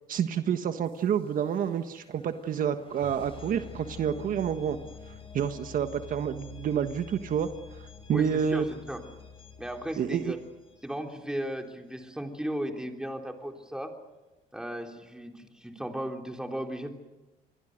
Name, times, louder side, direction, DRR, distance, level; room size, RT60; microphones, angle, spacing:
voice 1, 0.1-4.8 5.3-8.7 10.0-10.3, right 8 dB, 55° right, 8 dB, 1.4 m, -29 dB
sound 1, 0.8-11.7, left 6 dB, 35° left, 5.5 m, -48 dB
voice 2, 8.1-9.0 9.6-10.4 10.8-13.9 14.5-16.9, equal, 5° right, 3 dB, 3.5 m, -35 dB
28.0 x 22.5 x 6.6 m, 1.1 s
cardioid pair, 110°, 17 cm